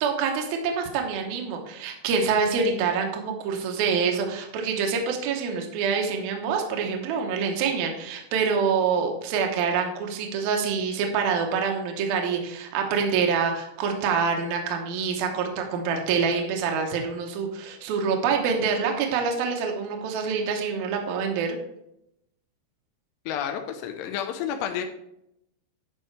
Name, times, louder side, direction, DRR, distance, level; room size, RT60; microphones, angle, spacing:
voice 1, 0.0-21.6, right 5 dB, 80° right, 2 dB, 2.1 m, -26 dB
voice 2, 23.3-24.8, left 9 dB, 85° left, 5 dB, 2.4 m, -30 dB
11.0 x 5.4 x 3.2 m, 0.80 s
omnidirectional pair, 5.5 m